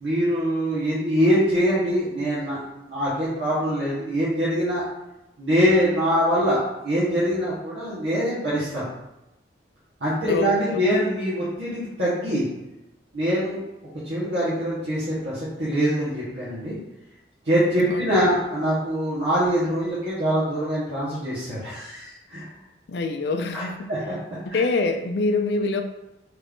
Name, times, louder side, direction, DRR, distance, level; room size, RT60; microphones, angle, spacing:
voice 1, 0.0-4.8 5.4-8.8 10.0-12.4 13.1-13.6 14.0-16.7 17.4-22.4 23.5-23.6 23.9-24.1 24.5-24.6, equal, 70° right, -11 dB, 1.1 m, -23 dB
voice 2, 10.2-10.8 17.9-18.3 22.9-23.9 24.5-25.8, left 3 dB, 60° left, 6 dB, 0.4 m, -25 dB
3.2 x 2.6 x 3.5 m, 0.93 s
head